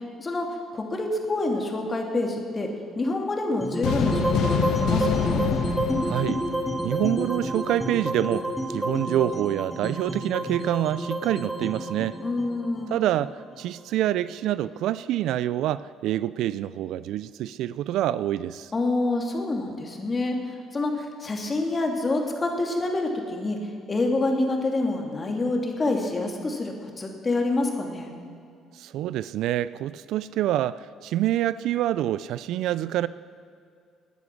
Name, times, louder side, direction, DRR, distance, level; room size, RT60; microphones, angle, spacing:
voice 1, 0.2-2.7 2.9-5.4 12.2-12.9 18.7-20.4 20.7-23.6 23.9-28.1, left 2 dB, 30° left, 2 dB, 2.9 m, -27 dB
sound 1, 3.6-13.8, equal, 5° right, 2.2 m, -29 dB
sound 2, 3.8-7.3, left 6 dB, 75° left, 1.2 m, -27 dB
voice 2, 6.0-6.4 6.8-12.2 12.9-18.7 28.8-33.1, right 13 dB, 75° right, 17 dB, 0.4 m, -26 dB
19.5 x 9.6 x 6.2 m, 2.4 s
supercardioid pair, 75°, 0 cm